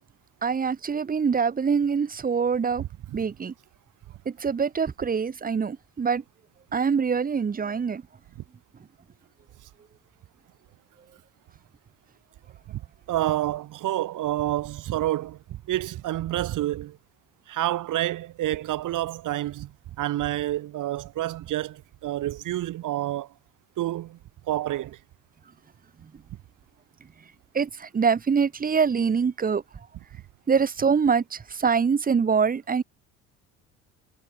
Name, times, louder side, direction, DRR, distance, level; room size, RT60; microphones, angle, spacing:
voice 1, 0.4-2.8 3.1-3.5 4.3-6.2 6.7-8.0 27.5-29.6 30.5-32.8, right 6 dB, 25° right, 1.1 m, -24 dB
voice 2, 2.8-3.2 12.7-12.8 13.1-17.0 17.5-19.7 20.0-23.3 23.8-24.2 24.5-25.0, right 14 dB, 60° right, 6.0 m, -28 dB
hypercardioid pair, 65°, 34 cm